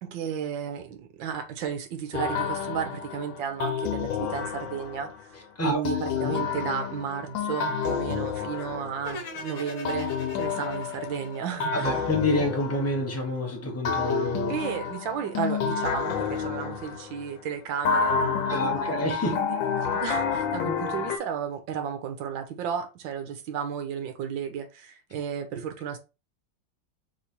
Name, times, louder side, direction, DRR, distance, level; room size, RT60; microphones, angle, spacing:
voice 1, 0.0-5.1 5.6-10.1 10.4-11.9 14.5-26.0, right 8 dB, 75° right, 1.5 m, -33 dB
sound 1, 2.1-5.2 5.8-9.4 9.8-13.4 13.8-17.3 17.8-21.2, left 6 dB, 75° left, 1.5 m, -29 dB
sound 2, 9.0-12.2, left 2 dB, 50° left, 1.4 m, -41 dB
voice 2, 11.7-14.5 18.5-19.4 25.5-25.6, left 1 dB, 15° left, 0.6 m, -28 dB
3.6 x 3.2 x 4.1 m
omnidirectional pair, 2.1 m